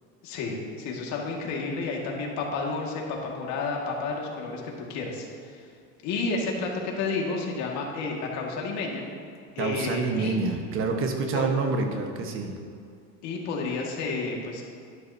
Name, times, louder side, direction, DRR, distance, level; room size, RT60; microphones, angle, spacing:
voice 1, 0.2-5.6 6.0-9.0 9.6-10.4 11.3-11.5 13.2-14.6, left 3 dB, 60° left, -1 dB, 2.0 m, -31 dB
voice 2, 9.6-12.5, right 4 dB, 40° right, 4 dB, 1.2 m, -27 dB
11.5 x 10.5 x 2.8 m, 2.2 s
cardioid pair, 135°, 32 cm